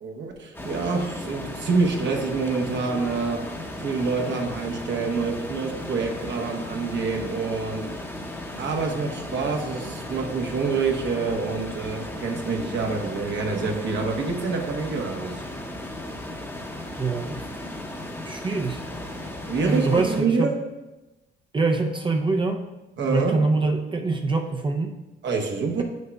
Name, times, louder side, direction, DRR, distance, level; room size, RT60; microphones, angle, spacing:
voice 1, 0.0-8.3 8.6-15.4 19.5-20.6 23.0-23.4 25.2-25.8, right 4 dB, 65° right, 1 dB, 1.1 m, -27 dB
sound 1, 0.5-20.2, left 1 dB, 10° left, 0.9 m, -36 dB
voice 2, 17.0-17.5 18.2-18.8 19.6-20.5 21.5-22.6 23.1-25.0, right 3 dB, 25° right, 2 dB, 0.5 m, -24 dB
8.2 x 6.4 x 2.3 m, 1.1 s
cardioid pair, 90°, 20 cm